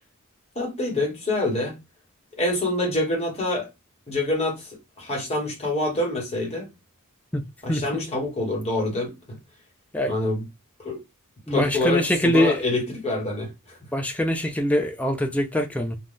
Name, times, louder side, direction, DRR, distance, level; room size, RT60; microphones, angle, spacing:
voice 1, 0.5-1.8 2.4-3.7 4.1-4.7 5.0-6.7 7.6-9.4 10.0-10.4 10.8-11.0 11.5-13.8, left 2 dB, 30° left, 1.2 m, -26 dB
voice 2, 11.5-12.6 13.9-16.0, equal, 5° left, 0.4 m, -23 dB
2.5 x 2.3 x 3.6 m
head